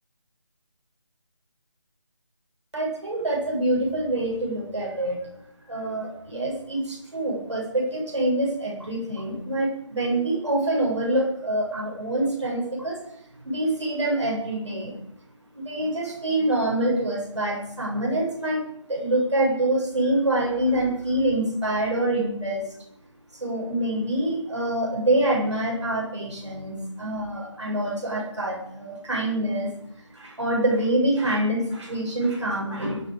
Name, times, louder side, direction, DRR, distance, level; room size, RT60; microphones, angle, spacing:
voice 1, 2.7-5.2 5.7-13.2 13.4-15.0 15.5-22.7 23.3-33.0, right 1 dB, 65° right, -1 dB, 7.7 m, -26 dB
23.0 x 8.7 x 6.8 m, 0.71 s
figure-of-eight pair, 180°, 16 cm